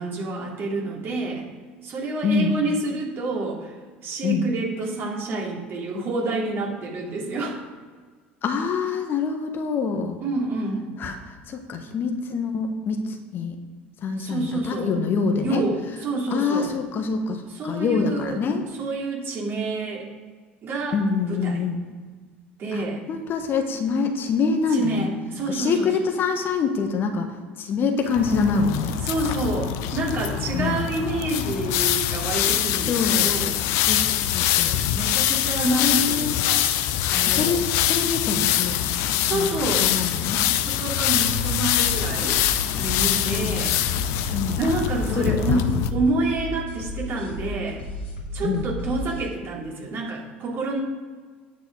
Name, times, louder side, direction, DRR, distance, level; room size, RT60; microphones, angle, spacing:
voice 1, 0.0-1.4 1.8-3.7 4.0-7.7 10.2-10.9 14.2-14.9 15.4-16.7 17.5-18.4 18.8-20.1 20.6-21.0 21.3-21.7 22.6-23.0 24.7-25.9 29.0-33.6 34.9-36.7 37.0-37.6 39.2-39.9 40.4-42.4 42.8-43.8 44.6-45.6 45.9-47.9 48.3-50.8, right 2 dB, 40° right, -2 dB, 3.1 m, -28 dB
voice 2, 2.2-2.5 4.2-4.5 8.4-10.2 11.0-13.6 14.0-15.6 16.3-18.6 20.9-21.9 22.7-25.1 25.5-29.0 30.5-30.8 32.9-33.3 33.8-34.8 35.6-36.4 37.3-37.6 37.9-38.8 39.3-39.5 39.8-40.4 43.2-43.6 44.3-44.6 45.1-45.7 48.4-48.7, left 5 dB, 35° left, 5 dB, 1.3 m, -25 dB
sound 1, 28.1-45.9, left 11 dB, 50° left, 0.7 m, -24 dB
sound 2, 41.7-49.3, left 1 dB, 75° left, 2.6 m, -34 dB
9.6 x 8.4 x 4.8 m, 1.5 s
figure-of-eight pair, 65°, 6 cm